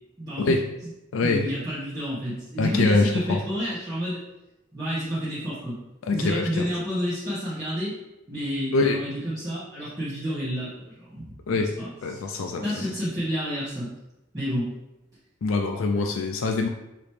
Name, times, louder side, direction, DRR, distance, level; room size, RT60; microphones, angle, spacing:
voice 1, 0.2-0.5 1.2-4.2 4.7-5.8 6.1-7.9 8.3-11.3 11.5-13.9 14.3-14.7, equal, 15° right, -13 dB, 1.3 m, -30 dB
voice 2, 2.6-3.4 6.1-6.6 8.7-9.0 11.5-11.7 12.0-12.9 15.4-16.7, left 3 dB, 70° left, 4 dB, 0.4 m, -24 dB
4.9 x 3.0 x 3.2 m, 0.95 s
head